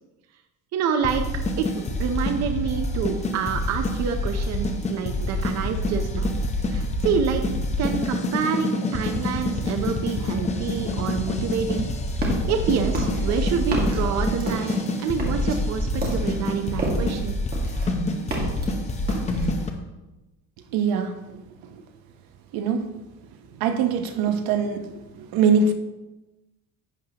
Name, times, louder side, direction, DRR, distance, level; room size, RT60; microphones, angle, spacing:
voice 1, 0.7-1.2 1.6-6.3 6.7-7.4 7.8-11.9 12.5-17.4, right 6 dB, 50° right, 6 dB, 0.7 m, -27 dB
sound 1, 1.0-19.7, left 1 dB, 20° left, 0.7 m, -26 dB
sound 2, 11.7-12.5 12.9-17.2 17.5-18.7 19.1-19.6, right 2 dB, 25° right, 1.8 m, -30 dB
voice 2, 20.7-21.1 22.5-22.8 23.6-25.7, right 5 dB, 75° right, 7 dB, 1.0 m, -22 dB
11.5 x 8.3 x 2.9 m, 1.0 s
cardioid pair, 175°, 36 cm